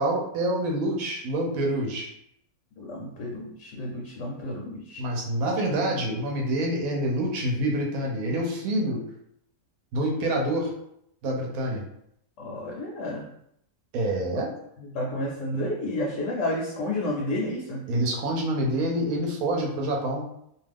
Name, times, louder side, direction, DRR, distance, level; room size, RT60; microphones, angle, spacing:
voice 1, 0.0-2.1 5.0-9.0 9.9-10.7 11.2-11.8 13.9-14.5 17.9-20.2, right 1 dB, 75° right, 0 dB, 1.0 m, -27 dB
voice 2, 2.8-5.0 12.4-13.2 14.8-17.9, left 1 dB, 70° left, -1 dB, 0.8 m, -31 dB
2.5 x 2.3 x 3.3 m, 0.74 s
omnidirectional pair, 1.5 m